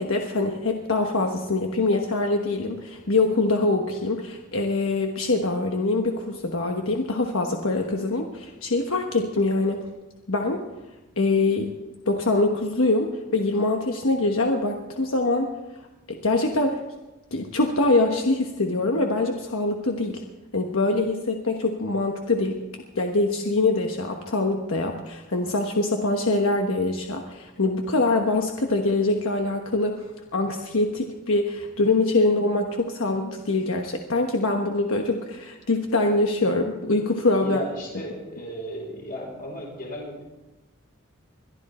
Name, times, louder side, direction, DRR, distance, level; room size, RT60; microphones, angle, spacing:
voice 1, 0.0-9.8 10.3-10.6 11.2-11.7 12.1-15.5 16.1-16.8 17.3-20.2 20.5-30.1 30.3-37.6, left 2 dB, 75° left, 3 dB, 1.2 m, -24 dB
voice 2, 37.4-40.2, equal, 40° left, -1 dB, 5.7 m, -35 dB
22.0 x 12.5 x 4.3 m, 1.1 s
head